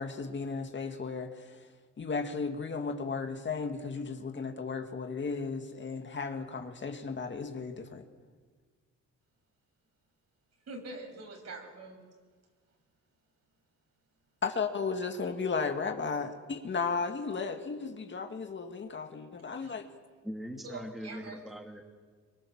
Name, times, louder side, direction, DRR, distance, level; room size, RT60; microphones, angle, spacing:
voice 1, 0.0-1.7 2.0-8.0 14.4-19.9, left 4 dB, 40° left, 5 dB, 2.2 m, -35 dB
voice 2, 10.7-12.0 19.6-19.8 20.6-21.4, right 2 dB, 55° right, 3 dB, 6.5 m, -44 dB
voice 3, 20.2-21.8, equal, ahead, 2 dB, 2.7 m, -41 dB
24.5 x 23.0 x 7.5 m, 1.5 s
cardioid pair, 90°, 30 cm